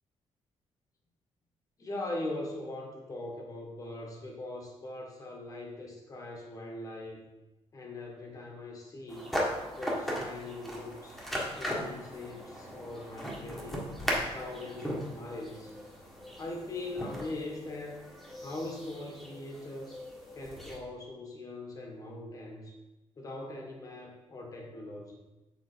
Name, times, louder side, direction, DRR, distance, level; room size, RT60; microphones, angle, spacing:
voice 1, 1.8-7.3 7.7-9.4 9.7-11.2 11.6-13.9 14.3-15.7 16.4-18.0 18.4-20.0 20.3-22.7 23.2-25.2, left 2 dB, 30° left, 0 dB, 1.6 m, -41 dB
sound 1, 9.1-20.8, equal, ahead, 1.5 m, -38 dB
7.4 x 5.0 x 5.1 m, 1.1 s
cardioid pair, 160°, 11 cm